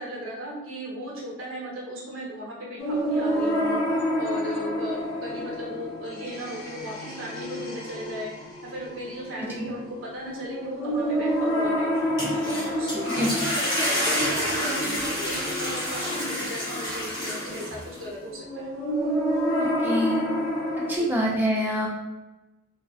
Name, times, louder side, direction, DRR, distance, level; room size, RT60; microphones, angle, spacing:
voice 1, 0.0-8.3 8.6-11.9 12.4-18.7 20.9-21.1, equal, 65° right, -5 dB, 0.8 m, -36 dB
sound 1, 2.8-21.0, equal, 70° left, 0.5 m, -29 dB
voice 2, 9.4-9.7 13.2-13.3 19.6-20.2 20.9-21.9, equal, 10° right, -3 dB, 0.4 m, -26 dB
sound 2, 12.0-18.0, equal, 20° left, 0.7 m, -29 dB
2.5 x 2.2 x 2.3 m, 1.0 s
head